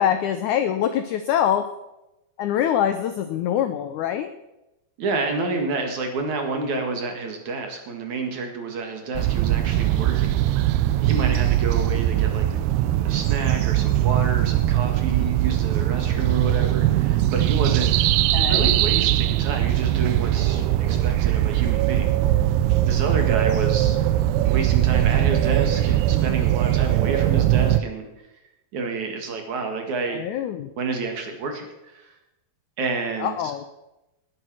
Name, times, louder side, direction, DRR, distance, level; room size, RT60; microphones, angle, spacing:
voice 1, 0.0-1.7 2.4-4.3 18.3-18.8 30.1-30.7 33.2-33.6, left 10 dB, 80° left, 9 dB, 1.7 m, -24 dB
voice 2, 5.0-10.4 11.0-12.5 13.0-17.9 18.5-22.1 22.8-24.0 24.5-28.1 28.7-30.2 30.8-32.2 32.8-33.4, right 3 dB, 55° right, 4 dB, 2.9 m, -29 dB
sound 1, 9.1-27.8, right 13 dB, 90° right, 2.7 m, -21 dB
19.0 x 9.0 x 6.2 m, 0.95 s
omnidirectional pair, 4.5 m